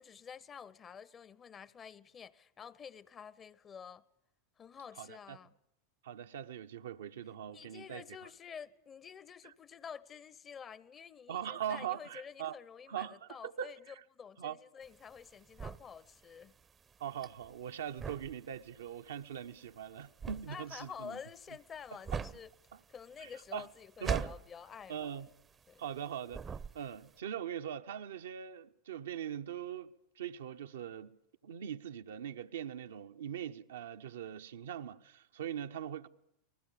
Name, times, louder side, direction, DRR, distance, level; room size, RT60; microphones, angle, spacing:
voice 1, 0.0-4.0 4.6-5.5 7.5-16.6 20.5-22.5 22.9-25.1 25.7-25.9, left 7 dB, 25° left, 1.0 m, -49 dB
voice 2, 5.0-5.4 6.0-8.0 9.4-9.5 11.3-12.6 12.9-14.0 14.4-14.6 17.0-21.2 22.1-22.2 22.7-22.8 23.2-23.7 24.0-24.3 24.9-25.3 25.8-26.4 26.7-31.2 31.4-36.1, right 9 dB, 65° right, 1.0 m, -41 dB
sound 1, 14.8-26.0 26.3-27.1, right 6 dB, 20° right, 0.8 m, -42 dB
29.0 x 20.0 x 7.0 m
figure-of-eight pair, 85°, 0 cm